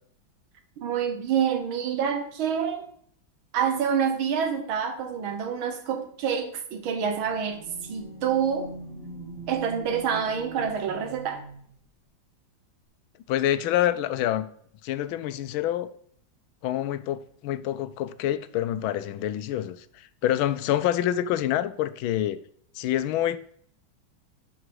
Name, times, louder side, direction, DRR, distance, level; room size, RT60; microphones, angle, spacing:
voice 1, 0.8-2.9 3.5-8.7 9.5-11.4, right 7 dB, 85° right, 2.0 m, -27 dB
sound 1, 7.0-11.8, right 3 dB, 35° right, 2.4 m, -43 dB
voice 2, 13.3-14.5 14.8-15.9 16.6-22.4 22.7-23.4, left 12 dB, 85° left, 1.4 m, -27 dB
11.0 x 5.0 x 4.7 m
omnidirectional pair, 2.1 m